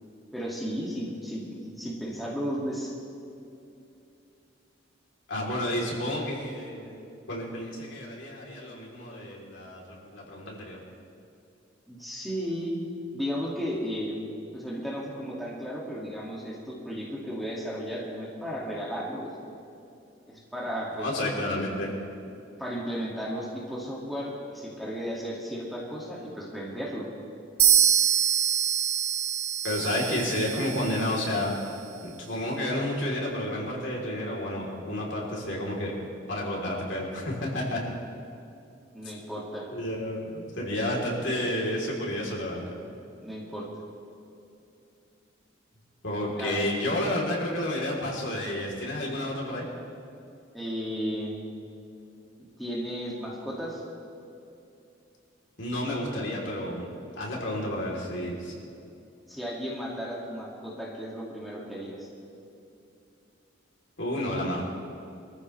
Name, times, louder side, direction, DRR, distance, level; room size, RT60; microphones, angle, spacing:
voice 1, 0.3-2.9 11.9-12.8 13.1-14.2 14.5-19.3 20.3-21.1 22.6-27.0 38.9-39.7 43.2-43.7 46.3-46.7 50.5-51.3 52.6-53.8 59.3-62.1, equal, ahead, -6 dB, 2.1 m, -34 dB
voice 2, 5.3-10.8 21.0-22.0 29.6-35.9 36.3-37.8 39.7-42.6 46.0-49.7 55.6-56.9 57.2-58.5 64.0-64.7, left 1 dB, 75° left, -3 dB, 3.4 m, -31 dB
sound 1, 27.6-31.4, right 9 dB, 60° right, 1.9 m, -25 dB
24.5 x 14.0 x 3.3 m, 2.7 s
head